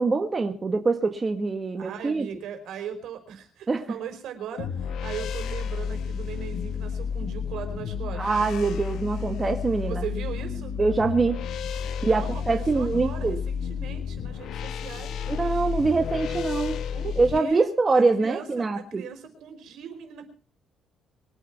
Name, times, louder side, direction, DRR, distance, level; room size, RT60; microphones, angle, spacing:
voice 1, 0.0-2.3 3.7-3.9 8.2-10.0 10.8-11.4 12.0-13.4 15.3-16.8 17.2-19.0, right 3 dB, 25° right, 5 dB, 1.7 m, -24 dB
voice 2, 1.7-8.5 9.8-10.7 11.8-15.2 15.8-15.9 16.9-17.7 17.9-20.3, right 7 dB, 75° right, 7 dB, 4.8 m, -38 dB
sound 1, 4.6-17.4, left 7 dB, 70° left, 1.2 m, -31 dB
23.5 x 9.0 x 5.9 m, 0.39 s
cardioid pair, 125°, 0 cm